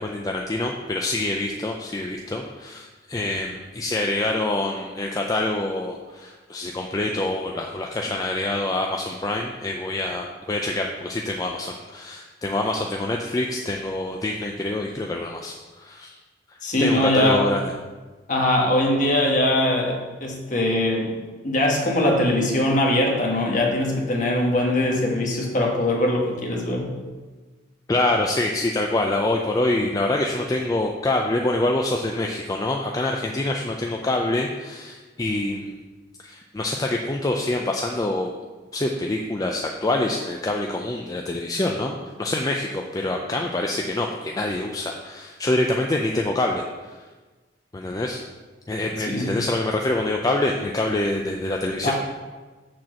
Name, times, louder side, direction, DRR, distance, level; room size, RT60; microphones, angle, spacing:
voice 1, 0.0-16.2 16.8-17.6 27.9-35.7 36.2-38.3 38.7-46.9 47.7-48.2 48.7-51.9, left 2 dB, 20° left, 1 dB, 0.4 m, -26 dB
voice 2, 16.6-17.5 18.3-21.2 21.4-26.9 49.0-49.3 51.8-51.9, left 1 dB, 45° left, -1 dB, 1.3 m, -21 dB
6.3 x 4.4 x 6.2 m, 1.3 s
head